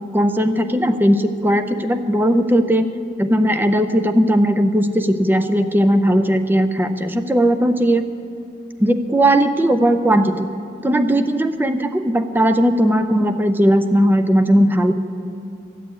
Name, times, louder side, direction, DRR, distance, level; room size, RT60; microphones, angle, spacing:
voice 1, 0.1-2.9 3.2-8.0 8.8-10.5 10.8-14.9, equal, 10° right, 8 dB, 0.6 m, -17 dB
14.0 x 8.4 x 8.4 m, 2.4 s
head